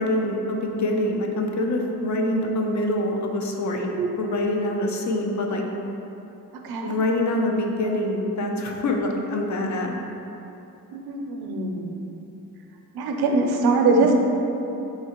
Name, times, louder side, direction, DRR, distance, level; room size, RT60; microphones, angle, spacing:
voice 1, 0.0-3.9 4.2-5.6 6.8-10.0, left 1 dB, 50° left, 1 dB, 0.5 m, -25 dB
voice 2, 10.9-11.9 12.9-14.1, right 3 dB, 80° right, 2 dB, 0.5 m, -22 dB
4.4 x 2.8 x 2.9 m, 3.0 s
cardioid pair, 95°, 37 cm